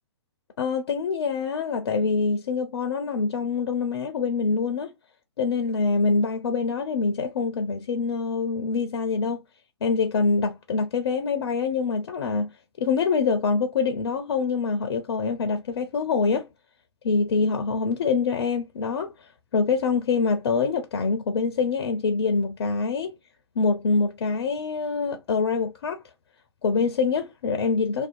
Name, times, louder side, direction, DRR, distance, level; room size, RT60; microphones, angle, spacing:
voice 1, 0.6-4.9 5.4-9.4 9.8-12.5 12.8-16.5 17.0-19.3 19.5-23.2 23.6-26.0 26.6-28.1, left 4 dB, 60° left, 0.5 m, -25 dB
2.6 x 2.2 x 2.4 m
figure-of-eight pair, 120°, 15 cm